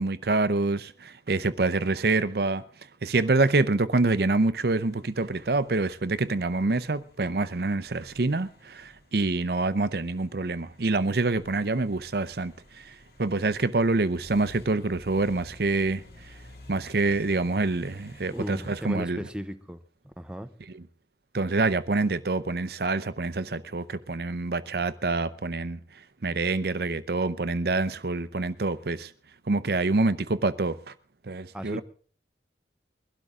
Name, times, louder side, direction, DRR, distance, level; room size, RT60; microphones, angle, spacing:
voice 1, 0.0-2.6 3.0-16.3 16.7-19.2 20.7-20.8 21.3-25.8 26.2-29.1 29.5-30.9 31.2-31.8, right 3 dB, 60° right, 0.7 m, -26 dB
sound 1, 4.7-18.9, left 1 dB, 65° left, 4.8 m, -53 dB
voice 2, 18.3-19.8 20.0-20.5 31.5-31.8, equal, 5° right, 0.7 m, -36 dB
22.0 x 12.5 x 3.7 m
head